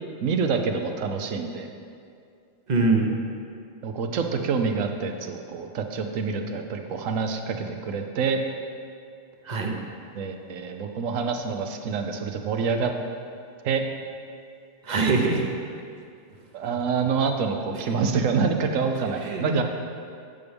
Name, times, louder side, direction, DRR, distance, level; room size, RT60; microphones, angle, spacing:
voice 1, 0.2-1.7 3.8-8.4 10.1-12.9 13.6-13.8 16.5-19.6, right 5 dB, 75° right, 5 dB, 1.1 m, -26 dB
voice 2, 2.7-3.1 9.5-9.7 14.8-15.5 19.2-19.6, right 3 dB, 35° right, 2 dB, 0.9 m, -23 dB
10.5 x 8.5 x 3.5 m, 2.3 s
omnidirectional pair, 1.4 m